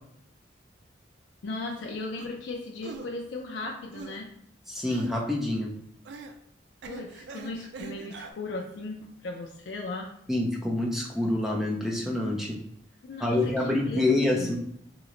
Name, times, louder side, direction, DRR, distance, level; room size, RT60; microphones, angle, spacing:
voice 1, 1.4-4.3 6.8-10.1 13.0-14.6, left 2 dB, 70° left, 1 dB, 0.4 m, -37 dB
sound 1, 2.2-2.3 2.8-3.1 3.9-4.2 4.9-5.2 6.0-6.4 6.8-8.3, right 4 dB, 65° right, 0.3 m, -42 dB
voice 2, 4.7-5.7 10.3-12.6 13.2-14.6, left 2 dB, ahead, -2 dB, 0.5 m, -27 dB
3.0 x 2.1 x 3.7 m, 0.71 s
head